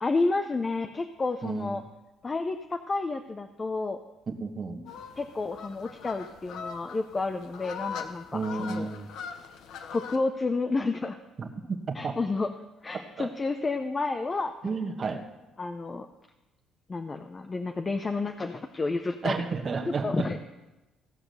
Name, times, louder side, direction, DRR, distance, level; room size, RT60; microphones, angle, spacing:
voice 1, 0.0-1.8 2.2-4.0 5.2-8.9 9.9-11.2 11.9-12.5 12.8-14.8 15.6-16.1 16.9-19.4 20.0-20.4, left 3 dB, 25° left, 6 dB, 0.7 m, -30 dB
voice 2, 1.4-1.8 4.3-4.9 8.3-9.1 11.4-12.2 13.2-13.3 14.6-15.2 19.2-20.3, right 4 dB, 40° right, 3 dB, 1.3 m, -32 dB
sound 1, 4.9-10.2, left 7 dB, 75° left, 1.0 m, -41 dB
16.0 x 6.0 x 6.9 m, 1.0 s
cardioid pair, 100°, 0 cm